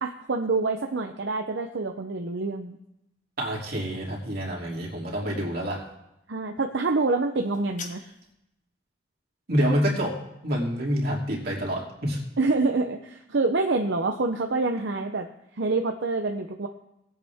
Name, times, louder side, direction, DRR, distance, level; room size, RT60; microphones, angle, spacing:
voice 1, 0.0-2.8 6.3-8.0 12.4-15.3 15.5-16.7, right 3 dB, 80° right, 4 dB, 0.7 m, -26 dB
voice 2, 3.4-5.8 9.5-10.2 10.4-12.2, equal, 60° right, -3 dB, 3.0 m, -27 dB
sound 1, 7.3-8.4, left 5 dB, 45° left, 1.3 m, -43 dB
18.0 x 8.2 x 3.6 m, 0.85 s
head